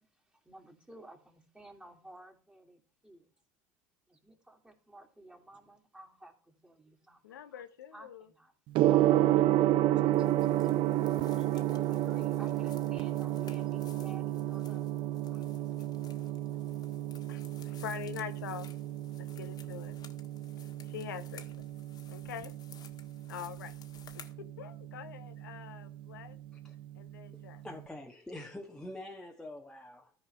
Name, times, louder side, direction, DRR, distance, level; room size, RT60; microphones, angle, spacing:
voice 1, 0.0-3.3 4.1-7.4 7.9-8.5 8.8-10.7 11.3-15.6, right 1 dB, 10° right, 2.8 m, -54 dB
voice 2, 7.2-8.3 17.3-18.7 19.4-19.9 20.8-21.5 22.1-22.5 23.3-23.8 24.1-24.2 24.6-26.4 26.9-27.6, left 10 dB, 90° left, 0.9 m, -44 dB
Gong, 8.7-27.8, right 14 dB, 55° right, 0.5 m, -32 dB
sound 1, 10.1-24.3, left 8 dB, 40° left, 1.5 m, -57 dB
voice 3, 27.6-30.1, left 1 dB, 5° left, 1.3 m, -45 dB
13.5 x 4.8 x 4.5 m
hypercardioid pair, 85°, 10 cm